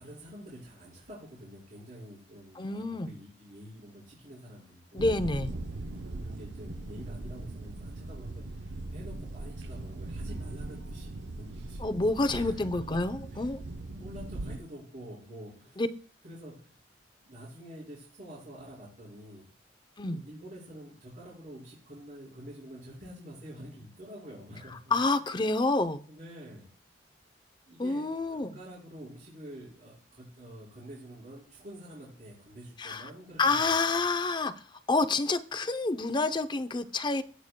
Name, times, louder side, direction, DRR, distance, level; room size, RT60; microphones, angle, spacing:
voice 1, 0.0-5.2 5.5-5.6 5.9-11.9 12.3-13.0 13.3-13.4 13.9-15.8 16.2-16.8 17.2-19.5 20.0-24.9 26.0-26.6 27.7-33.7, equal, 50° right, -8 dB, 5.2 m, -47 dB
voice 2, 2.6-3.1 4.9-5.5 11.8-13.6 15.8-15.9 20.0-20.2 24.9-26.0 27.8-28.6 32.8-33.1 33.4-37.2, left 3 dB, 25° left, 10 dB, 0.6 m, -28 dB
sound 1, 5.0-14.6, right 2 dB, 85° right, 0.7 m, -39 dB
15.5 x 6.5 x 2.2 m, 0.42 s
head